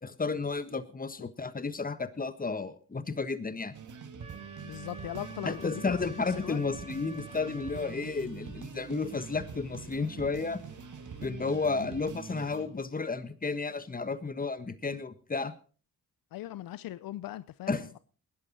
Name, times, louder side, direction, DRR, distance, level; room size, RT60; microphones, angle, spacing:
voice 1, 0.0-3.7 5.4-10.6 11.2-15.5 17.7-18.0, left 4 dB, 25° left, 1.5 m, -32 dB
sound 1, 3.7-12.7, right 6 dB, 55° right, 1.9 m, -44 dB
Wind instrument woodwind instrument, 4.2-8.0, right 2 dB, 15° right, 2.1 m, -49 dB
voice 2, 4.6-6.6 16.3-18.0, left 14 dB, 70° left, 0.6 m, -40 dB
sound 2, 4.7-11.3, left 3 dB, 55° left, 4.7 m, -57 dB
19.5 x 11.0 x 4.1 m
supercardioid pair, 60°, 36 cm